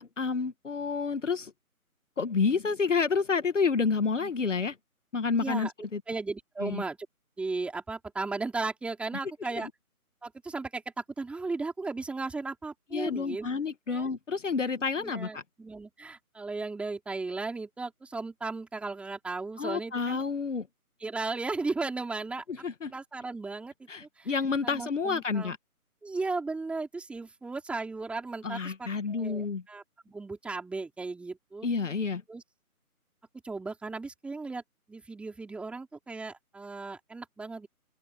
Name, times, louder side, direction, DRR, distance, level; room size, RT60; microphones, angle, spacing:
voice 1, 0.0-1.5 2.2-4.7 5.1-6.0 6.6-6.8 9.5-9.7 12.9-15.4 19.6-20.7 22.5-22.9 23.9-25.6 28.4-29.6 31.6-32.2, left 5 dB, 55° left, 1.8 m, -29 dB
voice 2, 5.4-5.7 6.1-7.0 7.4-9.7 10.2-13.5 13.9-14.1 15.0-20.2 21.0-22.4 22.9-23.7 24.2-24.3 24.6-25.6 26.0-31.7 32.3-32.4 33.4-34.6 34.9-37.7, right 3 dB, 5° right, 4.5 m, -36 dB
open air
figure-of-eight pair, 155°, 44 cm